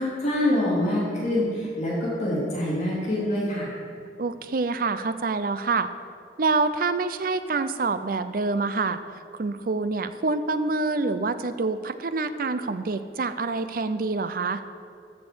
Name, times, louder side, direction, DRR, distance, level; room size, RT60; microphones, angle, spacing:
voice 1, 0.0-3.7, left 1 dB, 40° left, -7 dB, 3.0 m, -25 dB
voice 2, 4.2-5.9 6.4-9.0 9.3-14.6, right 3 dB, 50° right, 12 dB, 0.5 m, -26 dB
14.0 x 5.4 x 6.2 m, 2.4 s
head